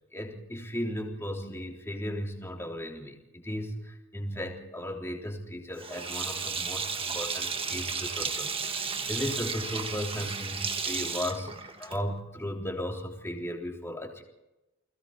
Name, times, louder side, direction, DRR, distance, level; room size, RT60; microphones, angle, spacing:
voice 1, 0.1-14.2, equal, 10° left, 0 dB, 3.6 m, -36 dB
Sink (filling or washing), 5.8-12.2, right 5 dB, 25° right, 1.4 m, -33 dB
30.0 x 20.5 x 4.4 m, 0.96 s
head